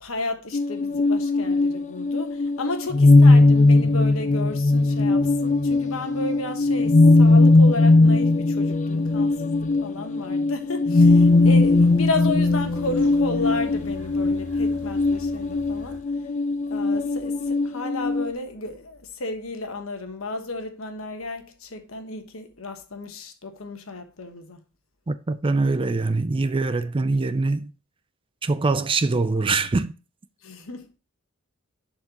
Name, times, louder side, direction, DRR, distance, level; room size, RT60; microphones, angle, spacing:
voice 1, 0.0-16.0 16.7-24.6 30.4-31.0, left 2 dB, 70° left, 1.2 m, -33 dB
sound 1, 0.5-18.3, left 2 dB, 35° left, 0.4 m, -19 dB
sound 2, 11.0-16.0, equal, 60° right, 1.8 m, -43 dB
voice 2, 25.1-27.7 28.4-29.9, right 3 dB, 25° right, 0.4 m, -23 dB
10.5 x 4.4 x 2.9 m
head